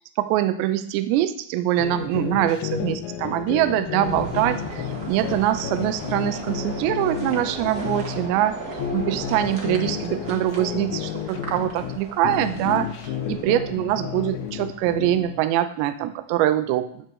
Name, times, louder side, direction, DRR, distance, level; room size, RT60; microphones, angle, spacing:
voice 1, 0.0-12.9 13.3-17.1, right 13 dB, 80° right, 11 dB, 2.9 m, -24 dB
sound 1, 1.8-8.3 8.7-12.0 12.2-15.4, left 9 dB, 80° left, 2.1 m, -31 dB
sound 2, 4.0-15.2, right 2 dB, 55° right, 1.1 m, -37 dB
13.5 x 4.4 x 8.0 m, 0.63 s
omnidirectional pair, 5.3 m